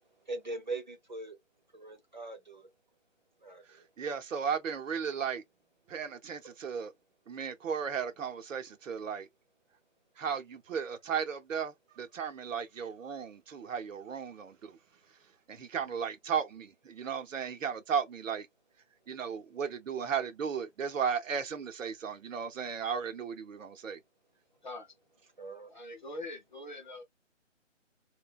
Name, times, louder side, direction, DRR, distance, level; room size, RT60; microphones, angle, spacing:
voice 1, 0.2-1.4 1.7-2.7 3.4-3.9 25.4-25.7, right 3 dB, 40° right, 0.5 m, -41 dB
voice 2, 4.0-5.4 5.9-6.9 7.3-9.3 10.2-14.8 15.5-18.5 19.1-24.0, right 7 dB, 75° right, 0.7 m, -35 dB
voice 3, 24.6-24.9 25.7-27.0, left 2 dB, 40° left, 0.6 m, -43 dB
2.7 x 2.2 x 2.3 m
hypercardioid pair, 170°, 39 cm